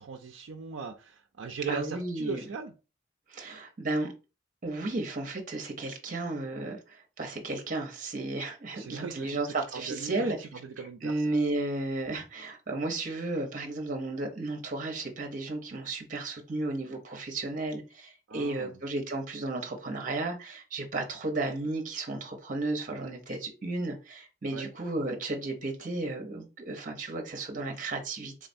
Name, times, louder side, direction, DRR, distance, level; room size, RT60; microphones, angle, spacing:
voice 1, 0.0-2.7 8.7-9.4 9.7-11.3 18.3-18.8 24.5-24.7, right 5 dB, 75° right, 0.4 m, -39 dB
voice 2, 1.7-2.4 3.3-4.1 4.6-10.4 11.0-28.5, right 2 dB, 40° right, 0.8 m, -33 dB
3.7 x 3.2 x 2.6 m
head